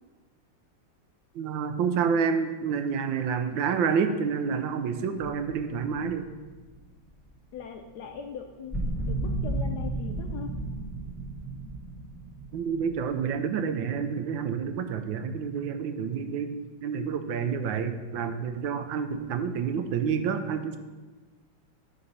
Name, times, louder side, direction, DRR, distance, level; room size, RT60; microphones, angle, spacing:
voice 1, 1.3-6.3 12.5-20.8, right 6 dB, 80° right, 8 dB, 1.3 m, -29 dB
sound 1, 5.2-7.1 8.7-13.2, right 2 dB, ahead, 2.3 m, -34 dB
voice 2, 7.5-8.8 9.0-10.5, left 7 dB, 70° left, 4 dB, 1.0 m, -40 dB
11.5 x 4.0 x 5.3 m, 1.3 s
omnidirectional pair, 2.2 m